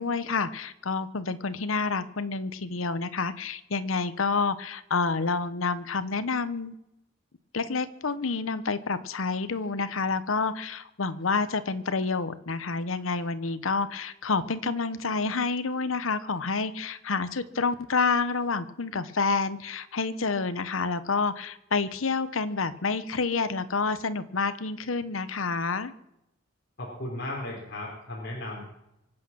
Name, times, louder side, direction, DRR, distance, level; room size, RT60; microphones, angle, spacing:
voice 1, 0.0-6.7 7.5-25.9, left 4 dB, 90° left, 13 dB, 0.9 m, -28 dB
voice 2, 26.8-28.6, left 1 dB, 55° left, -4 dB, 4.5 m, -35 dB
24.5 x 8.7 x 6.2 m, 0.85 s
head